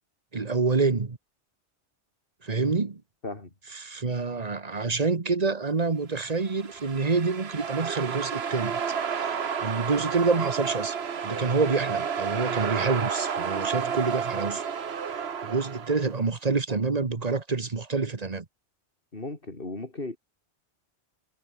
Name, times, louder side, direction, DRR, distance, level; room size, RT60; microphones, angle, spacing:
voice 1, 0.3-1.2 2.4-3.0 3.8-8.8 9.1-10.9 11.2-14.6 15.4-18.4, right 4 dB, 35° right, 1.4 m, -27 dB
voice 2, 3.2-3.5 19.1-20.2, left 2 dB, 50° left, 3.8 m, -36 dB
sound 1, 6.3-16.2, right 7 dB, 65° right, 1.4 m, -31 dB
omnidirectional pair, 1.2 m